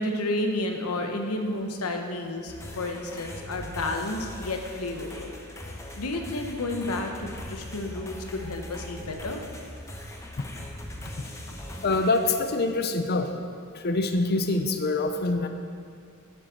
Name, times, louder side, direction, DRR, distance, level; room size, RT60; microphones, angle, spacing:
voice 1, 0.0-5.4 5.9-9.4, left 2 dB, 80° left, 4 dB, 1.0 m, -31 dB
sound 1, 2.5-12.4, left 1 dB, 15° left, 0.8 m, -40 dB
voice 2, 11.8-13.3 13.7-15.5, left 2 dB, 45° left, 7 dB, 0.6 m, -25 dB
7.7 x 7.3 x 6.2 m, 2.3 s
head